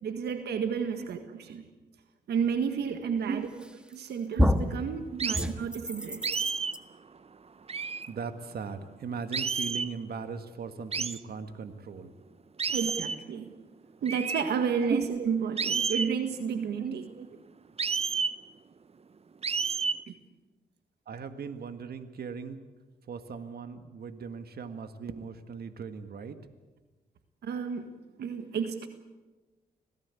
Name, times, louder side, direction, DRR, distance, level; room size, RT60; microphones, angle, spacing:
voice 1, 0.0-1.7 2.3-3.5 3.9-6.2 12.7-13.5 14.0-17.0 20.1-20.2 27.4-27.9 28.2-28.9, right 6 dB, 90° right, 8 dB, 1.7 m, -31 dB
voice 2, 3.3-3.6 4.8-5.2 6.0-6.1 6.4-6.5 8.1-12.1 14.8-15.2 16.8-17.3 21.1-22.6 23.1-26.4, right 6 dB, 70° right, 9 dB, 1.8 m, -38 dB
sound 1, 3.6-4.0 4.4-4.8 5.3-6.8, equal, 5° right, 1.8 m, -28 dB
sound 2, 5.2-5.5 6.2-6.8 7.7-8.1 9.3-9.9 10.9-11.2 12.6-13.2 14.1-14.4 15.6-16.1 17.8-18.4 19.4-20.0, right 5 dB, 40° right, 0.8 m, -30 dB
26.5 x 17.5 x 8.4 m, 1.2 s
cardioid pair, 70°, 17 cm